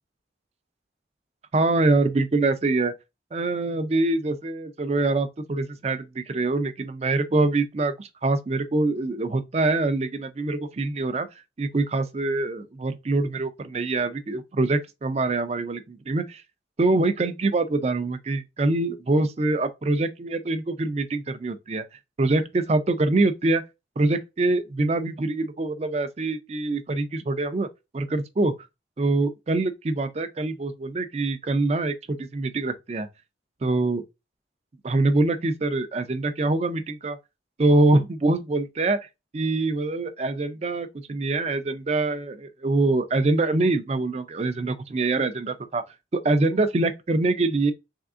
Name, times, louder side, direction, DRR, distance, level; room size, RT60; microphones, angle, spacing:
voice 1, 1.5-2.9 3.3-11.3 11.6-16.4 16.8-21.8 22.2-23.6 24.0-27.7 27.9-28.5 29.0-33.1 33.6-34.0 34.8-37.2 37.6-39.1 39.3-45.8 46.1-47.7, right 2 dB, 35° right, 0.4 m, -24 dB
3.6 x 3.4 x 2.4 m
head